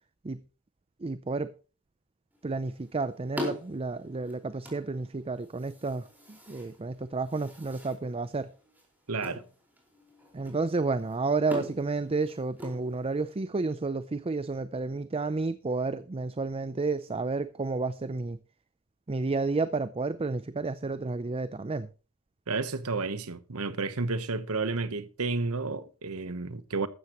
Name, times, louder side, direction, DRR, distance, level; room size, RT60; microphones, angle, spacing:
voice 1, 1.0-1.5 2.4-8.5 10.3-18.4 19.1-21.9, right 3 dB, 25° right, 0.5 m, -31 dB
sound 1, 2.3-13.4, left 1 dB, 10° right, 4.6 m, -44 dB
voice 2, 9.1-9.4 22.5-26.9, right 3 dB, 85° right, 1.1 m, -31 dB
15.0 x 12.5 x 3.1 m
head